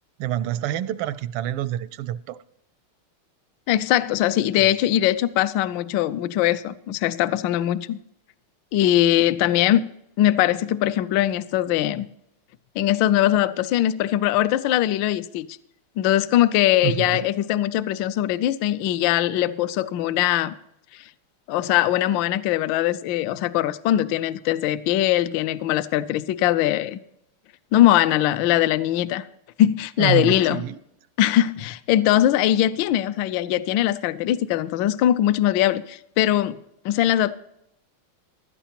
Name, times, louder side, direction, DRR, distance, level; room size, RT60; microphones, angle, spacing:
voice 1, 0.2-2.4 4.6-4.7 16.8-17.3 30.0-30.8, right 12 dB, 85° right, 1.5 m, -27 dB
voice 2, 3.7-8.0 8.7-9.9 10.2-12.1 12.8-15.5 16.0-20.5 20.9-21.0 21.5-27.0 27.7-29.3 29.6-30.6 31.2-36.6 36.8-37.3, left 13 dB, 75° left, 1.1 m, -21 dB
16.0 x 12.0 x 2.9 m
omnidirectional pair, 2.4 m